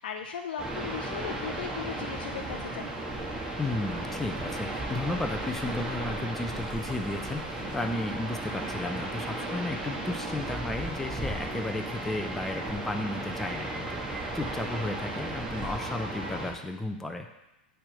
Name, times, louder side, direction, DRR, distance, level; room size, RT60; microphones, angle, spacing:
voice 1, 0.0-2.9, left 7 dB, 70° left, 4 dB, 0.5 m, -37 dB
sound 1, 0.6-16.5, right 2 dB, 10° right, 1.5 m, -35 dB
voice 2, 3.6-17.3, left 2 dB, 5° left, 4 dB, 0.6 m, -34 dB
8.7 x 3.5 x 6.2 m, 0.94 s
hypercardioid pair, 100°, 5 cm